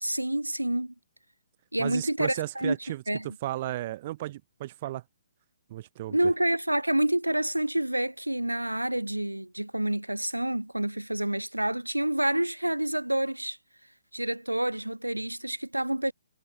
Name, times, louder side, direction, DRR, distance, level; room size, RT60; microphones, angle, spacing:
voice 1, 0.0-0.9 1.7-2.7 3.1-3.3 6.1-13.6 14.1-16.1, right 1 dB, 85° right, 0.7 m, -28 dB
voice 2, 1.8-3.0 3.4-5.0 5.7-6.3, right 15 dB, 35° right, 0.6 m, -34 dB
figure-of-eight pair, 130°, 0 cm